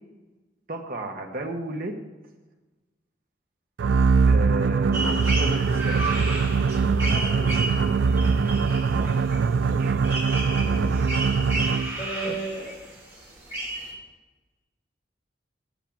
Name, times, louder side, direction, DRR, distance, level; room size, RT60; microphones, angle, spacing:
voice 1, 0.7-2.0 4.3-6.1 9.0-9.2 9.6-10.0 10.8-11.0 12.2-12.4, right 1 dB, 50° right, 1 dB, 1.0 m, -33 dB
sound 1, 3.8-12.0, right 5 dB, 70° right, 0.4 m, -22 dB
sound 2, 4.9-13.9, right 1 dB, 15° right, 3.7 m, -33 dB
voice 2, 7.1-7.5 10.6-11.2 12.0-12.7, right 3 dB, 30° left, -7 dB, 2.7 m, -35 dB
8.2 x 7.3 x 8.6 m, 1.2 s
head